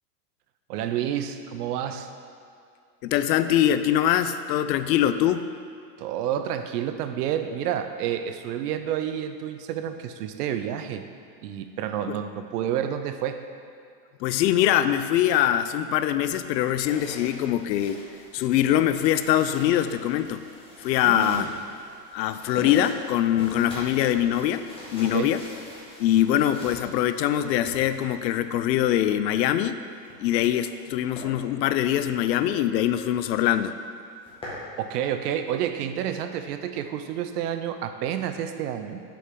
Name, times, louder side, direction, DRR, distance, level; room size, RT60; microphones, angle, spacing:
voice 1, 0.7-2.1 6.0-11.1 11.4-13.4 21.0-21.5 25.1-25.3 34.8-39.0, right 10 dB, 70° right, 8 dB, 0.6 m, -29 dB
voice 2, 3.0-5.5 12.1-12.2 14.2-18.0 18.3-20.4 20.8-21.5 22.1-24.6 24.9-25.4 26.0-29.8 30.2-33.7, left 11 dB, 85° left, 11 dB, 0.5 m, -23 dB
sound 1, 16.8-28.5 29.8-30.8 31.1-31.3 31.8-32.0 32.4-32.5 32.8-32.9 33.2-33.6 34.0-34.7, left 1 dB, 10° left, 1.6 m, -43 dB
6.9 x 5.3 x 3.7 m, 2.4 s
supercardioid pair, 130°, 49 cm